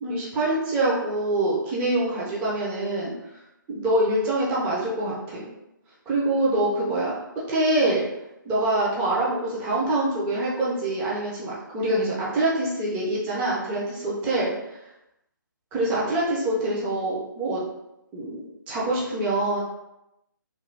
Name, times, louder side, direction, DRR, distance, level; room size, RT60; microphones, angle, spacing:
voice 1, 0.0-3.4 3.7-5.4 6.1-7.1 7.5-8.1 8.4-14.8 15.7-17.6 18.1-19.6, right 1 dB, 15° right, -5 dB, 0.5 m, -25 dB
3.1 x 2.2 x 3.1 m, 0.89 s
figure-of-eight pair, 140°, 11 cm